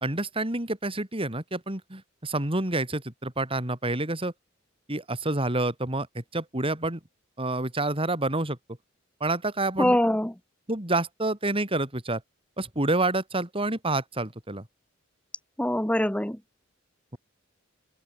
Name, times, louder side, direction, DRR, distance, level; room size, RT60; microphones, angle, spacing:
voice 1, 0.0-4.3 4.9-7.0 7.4-8.6 9.2-10.0 10.7-12.2 12.6-14.6, right 2 dB, 25° right, 3.3 m, -28 dB
voice 2, 9.8-10.3 15.6-16.4, left 1 dB, 5° left, 1.2 m, -23 dB
head